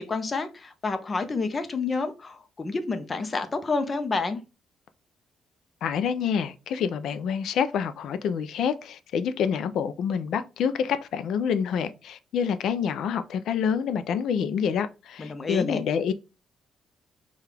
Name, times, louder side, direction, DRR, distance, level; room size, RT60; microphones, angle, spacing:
voice 1, 0.0-4.4 15.2-15.8, left 3 dB, 30° left, 0.7 m, -29 dB
voice 2, 5.8-16.1, left 7 dB, 75° left, 0.4 m, -27 dB
4.6 x 2.4 x 3.3 m
cardioid pair, 90°, 0 cm